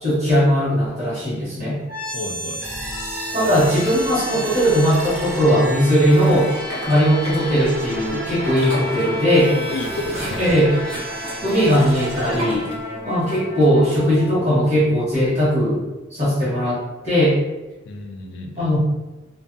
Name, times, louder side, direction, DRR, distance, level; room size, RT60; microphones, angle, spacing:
voice 1, 0.0-1.8 3.3-6.5 6.9-9.5 10.4-10.7 11.4-12.7 13.0-15.8 16.1-17.4 18.6-18.8, equal, 35° right, -9 dB, 1.3 m, -18 dB
sound 1, 1.9-15.8, equal, 50° right, 0.9 m, -31 dB
voice 2, 2.1-2.6 9.4-10.6 17.8-18.7, left 2 dB, 70° left, 4 dB, 0.4 m, -31 dB
sound 2, 5.1-5.9 6.5-13.6, equal, 70° right, 1.4 m, -36 dB
2.5 x 2.5 x 2.6 m, 1.1 s
head